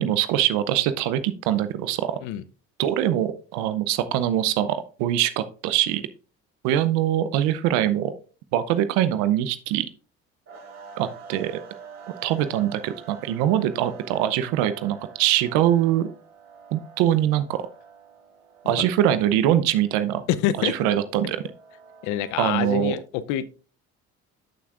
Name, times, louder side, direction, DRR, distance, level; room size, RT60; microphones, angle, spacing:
voice 1, 0.0-2.2 2.8-6.0 6.6-8.1 8.5-9.9 11.0-11.6 12.2-16.1 16.7-17.6 18.7-20.2 20.6-21.4 22.4-22.9, right 11 dB, 90° right, 12 dB, 0.6 m, -23 dB
sound 1, 10.5-22.8, right 6 dB, 65° right, 4.6 m, -47 dB
voice 2, 20.3-20.7 22.0-23.5, left 11 dB, 85° left, 16 dB, 0.6 m, -26 dB
12.5 x 5.9 x 2.4 m, 0.38 s
supercardioid pair, 80°, 29 cm